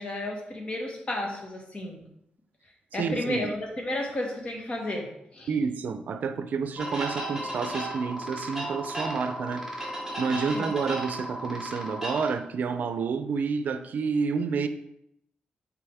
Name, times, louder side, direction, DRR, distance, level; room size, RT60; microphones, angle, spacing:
voice 1, 0.0-2.1 2.9-5.1 5.3-5.5 10.5-10.7, left 1 dB, 40° left, 1 dB, 1.6 m, -32 dB
voice 2, 3.0-3.5 5.5-9.6 10.2-14.7, right 5 dB, 65° right, 9 dB, 0.5 m, -29 dB
sound 1, 6.8-12.3, right 1 dB, 5° right, 2.1 m, -34 dB
6.8 x 4.7 x 3.5 m, 0.76 s
cardioid pair, 110°, 3 cm